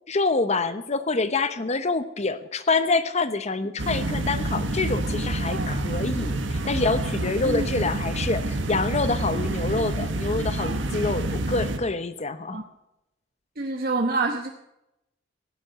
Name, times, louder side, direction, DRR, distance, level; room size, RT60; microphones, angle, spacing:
voice 1, 0.1-12.6, left 3 dB, 35° left, 12 dB, 0.8 m, -26 dB
sound 1, 3.8-11.8, right 2 dB, 80° right, 1.5 m, -28 dB
voice 2, 7.5-7.8 12.5-12.6 13.6-14.5, right 3 dB, 50° right, 3 dB, 1.0 m, -26 dB
15.5 x 9.8 x 6.5 m, 0.88 s
head